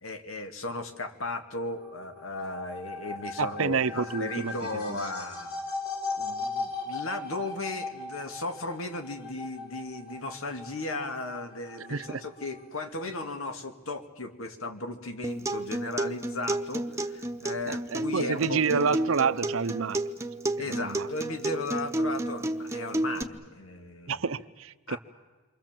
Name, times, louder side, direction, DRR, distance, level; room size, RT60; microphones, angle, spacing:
voice 1, 0.0-5.6 6.2-18.9 20.6-24.2 24.9-25.0, left 2 dB, 80° left, 2.3 m, -36 dB
sound 1, 1.7-12.9, left 3 dB, 50° left, 4.2 m, -38 dB
voice 2, 3.4-5.0 11.8-12.2 17.7-20.0 20.6-21.1 24.1-25.0, right 5 dB, 75° right, 0.7 m, -29 dB
Acoustic guitar, 15.2-23.2, right 1 dB, 15° right, 1.1 m, -32 dB
29.0 x 24.5 x 7.6 m
head